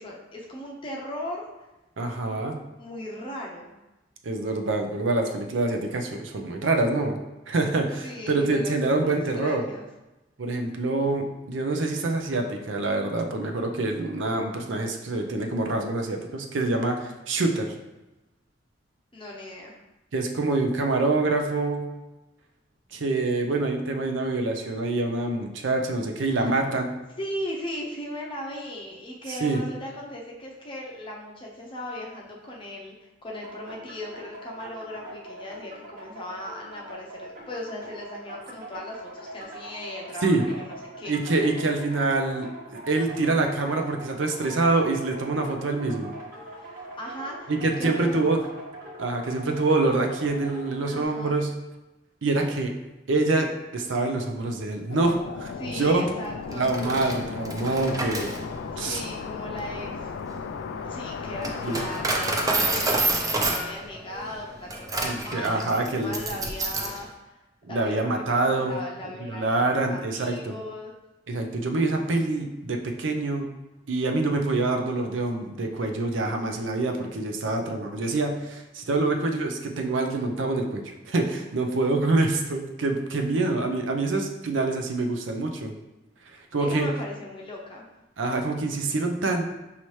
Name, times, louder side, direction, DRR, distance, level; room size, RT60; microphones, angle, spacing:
voice 1, 0.0-1.5 2.8-3.7 8.0-9.8 19.1-19.8 26.2-26.5 27.2-40.3 40.6-41.1 46.6-47.5 47.8-48.3 50.8-51.4 55.6-57.1 58.7-60.1 60.8-67.4 67.7-70.9 86.6-87.9, left 1 dB, 30° left, -2 dB, 0.6 m, -38 dB
voice 2, 2.0-2.6 4.2-7.2 7.5-9.7 10.4-17.7 20.1-21.9 22.9-26.9 29.3-29.6 40.2-40.4 41.1-46.1 47.5-48.4 49.0-51.5 52.2-52.7 53.1-56.0 56.6-58.3 58.8-59.0 61.6-61.8 65.0-66.2 67.7-68.8 69.2-70.5 71.3-73.5 73.9-85.7 86.3-86.9 88.2-89.5, right 2 dB, 80° right, 4 dB, 0.6 m, -26 dB
sound 1, 33.3-51.0, right 1 dB, 50° right, 1.1 m, -42 dB
sound 2, 54.9-62.9, left 5 dB, 70° left, 0.3 m, -36 dB
Coin (dropping), 56.5-67.0, right 2 dB, 20° right, 0.5 m, -29 dB
5.5 x 2.8 x 3.1 m, 1.0 s
head